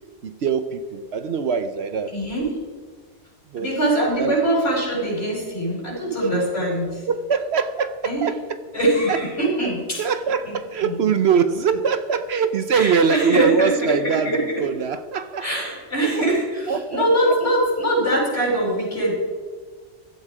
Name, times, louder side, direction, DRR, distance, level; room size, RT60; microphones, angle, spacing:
voice 1, 0.2-2.1 3.5-3.7 4.2-4.3 6.3-6.4 7.1-8.4 9.1-9.2 10.0-14.3 14.6-15.5 16.1-16.2 16.7-17.0, right 6 dB, 65° right, 11 dB, 1.0 m, -22 dB
voice 2, 2.1-2.5 3.6-7.0 8.0-8.3 8.7-10.1 10.5-10.6 10.8-11.0 12.7-14.6 15.4-19.1, right 1 dB, 55° left, -3 dB, 5.6 m, -22 dB
15.5 x 12.5 x 4.9 m, 1.5 s
omnidirectional pair, 1.2 m